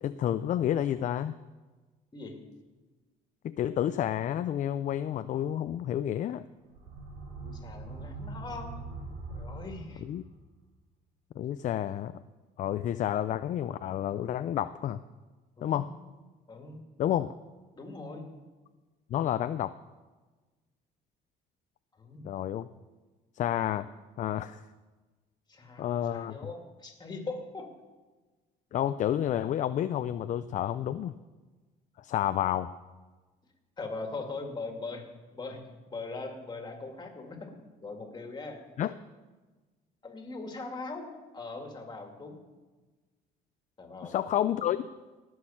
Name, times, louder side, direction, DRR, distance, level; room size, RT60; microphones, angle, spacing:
voice 1, 0.0-1.3 3.4-6.4 10.0-10.2 11.4-12.2 12.6-15.0 15.6-15.9 17.0-17.3 19.1-19.7 22.2-22.7 23.4-23.9 24.2-24.6 25.8-26.3 28.7-31.1 32.0-32.7 38.8-38.9 44.0-44.9, left 11 dB, 50° left, 12 dB, 0.4 m, -30 dB
sound 1, 6.6-10.4, right 3 dB, 65° right, 4.5 m, -42 dB
voice 2, 7.4-8.8 9.3-10.0 15.6-15.8 16.5-16.8 17.8-18.3 21.9-22.3 25.5-27.7 33.8-35.1 35.3-37.5 37.8-38.6 40.0-41.1 41.3-42.4 43.8-44.6, left 3 dB, 25° left, 3 dB, 2.3 m, -41 dB
18.5 x 6.5 x 5.7 m, 1.3 s
cardioid pair, 110°, 17 cm